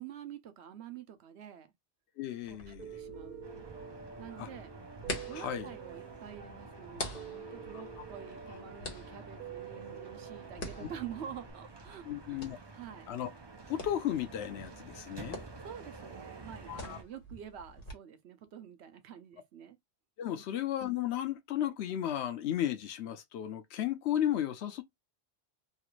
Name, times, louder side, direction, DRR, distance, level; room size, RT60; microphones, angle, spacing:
voice 1, 0.0-1.7 2.5-3.7 4.2-4.7 5.3-12.4 12.7-13.1 15.3-19.8 20.3-20.4, right 9 dB, 80° right, 1.0 m, -47 dB
voice 2, 2.2-2.9 4.4-4.5 5.3-5.7 8.0-8.1 8.5-8.6 10.8-10.9 12.0-12.6 13.1-13.3 13.7-15.4 16.7-17.0 20.2-24.8, left 11 dB, 80° left, 0.9 m, -34 dB
sound 1, 2.4-17.9, left 1 dB, 55° left, 1.3 m, -47 dB
Piano, 2.8-11.5, right 6 dB, 50° right, 0.9 m, -47 dB
sound 2, 3.4-17.0, right 3 dB, 30° right, 0.5 m, -50 dB
3.1 x 2.4 x 3.0 m
omnidirectional pair, 1.1 m